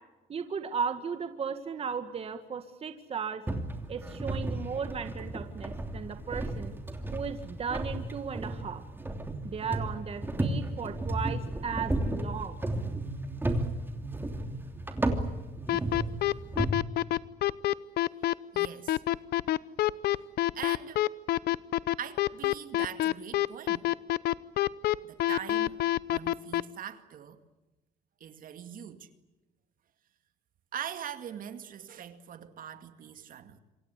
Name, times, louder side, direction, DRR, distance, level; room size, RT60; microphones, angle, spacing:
voice 1, 0.3-3.4 3.9-6.7 7.1-8.8 9.4-12.6, right 6 dB, 35° right, 1.9 m, -36 dB
sound 1, 3.5-16.7, right 1 dB, 10° right, 3.0 m, -34 dB
sound 2, 15.7-26.6, left 14 dB, 70° left, 0.8 m, -26 dB
voice 2, 18.2-19.0 20.5-21.1 22.0-23.9 25.0-27.4 28.2-29.1 30.7-33.6, right 9 dB, 55° right, 2.2 m, -42 dB
27.0 x 25.0 x 8.3 m
cardioid pair, 110°, 17 cm